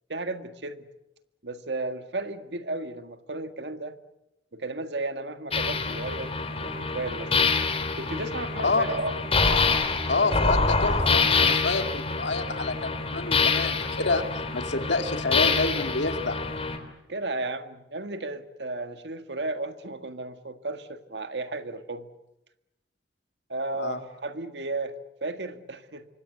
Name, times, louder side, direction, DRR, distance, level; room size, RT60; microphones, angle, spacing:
voice 1, 0.1-0.8 1.4-4.0 4.5-6.3 6.6-7.3 8.0-9.2 17.1-22.1 23.5-26.1, right 2 dB, 75° right, 9 dB, 1.8 m, -34 dB
sound 1, 5.5-16.8, left 4 dB, 35° left, 3.2 m, -26 dB
voice 2, 10.1-14.2 14.5-16.4 23.8-24.0, left 3 dB, 80° left, 6 dB, 2.5 m, -28 dB
27.0 x 24.5 x 8.0 m, 0.91 s
head